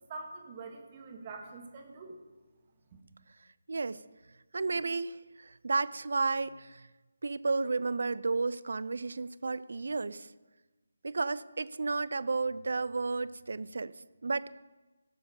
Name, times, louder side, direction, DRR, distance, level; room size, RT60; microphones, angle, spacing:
voice 1, 0.1-2.2 2.9-3.0, right 3 dB, 30° right, 2 dB, 1.9 m, -45 dB
voice 2, 3.7-4.0 4.5-6.9 7.2-10.3 11.0-13.9 14.2-14.5, right 3 dB, 65° right, 17 dB, 0.5 m, -32 dB
17.0 x 7.0 x 5.2 m, 1.1 s
figure-of-eight pair, 155°, 0 cm